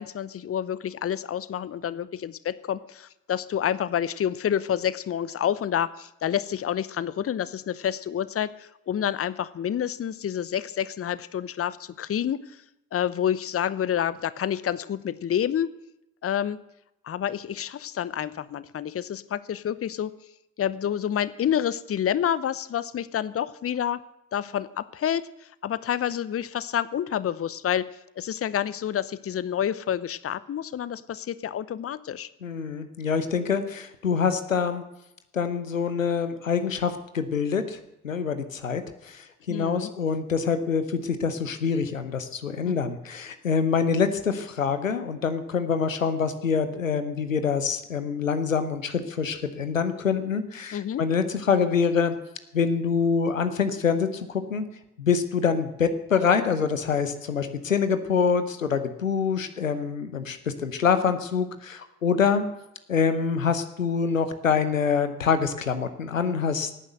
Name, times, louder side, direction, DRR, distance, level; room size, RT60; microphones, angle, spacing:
voice 1, 0.0-12.4 12.9-15.7 16.2-16.6 17.0-20.1 20.6-24.0 24.3-25.3 25.6-32.3 39.5-39.9 42.6-42.7 50.7-51.0, left 9 dB, 35° left, 17 dB, 0.9 m, -28 dB
voice 2, 32.4-34.8 35.3-37.8 38.0-52.1 52.5-54.7 55.0-62.5 62.9-66.7, left 6 dB, 90° left, 10 dB, 0.9 m, -25 dB
18.0 x 9.9 x 8.0 m, 0.88 s
figure-of-eight pair, 40°, 38 cm